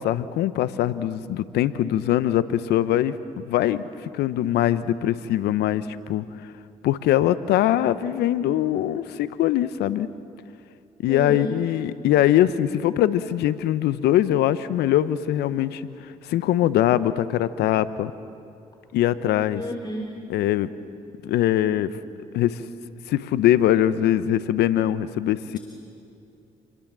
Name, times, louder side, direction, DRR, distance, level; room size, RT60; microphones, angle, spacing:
voice 1, 0.0-6.3 6.8-10.1 11.0-18.1 18.9-19.6 20.3-20.7 21.2-21.9 22.3-22.6 23.1-25.6, left 12 dB, 80° left, 15 dB, 0.9 m, -22 dB
voice 2, 11.1-11.6 19.5-20.2, left 1 dB, 25° left, 2 dB, 3.5 m, -31 dB
28.5 x 21.5 x 7.5 m, 2.7 s
hypercardioid pair, 50°, 17 cm